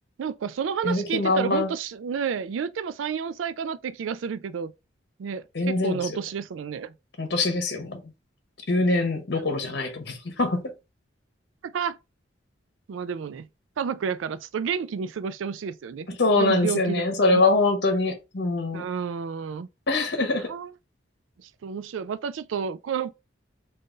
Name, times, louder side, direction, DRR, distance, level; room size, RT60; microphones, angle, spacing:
voice 1, 0.2-4.7 5.2-6.9 9.3-9.4 11.6-12.0 12.9-13.5 13.8-17.0 17.3-17.4 18.7-19.7 20.5-20.7 21.6-23.1, right 6 dB, 90° right, 0.4 m, -30 dB
voice 2, 0.8-1.7 5.5-6.2 7.2-8.0 8.7-10.6 16.2-18.8 19.9-20.5, left 2 dB, 60° left, 1.0 m, -23 dB
3.8 x 2.6 x 3.7 m
head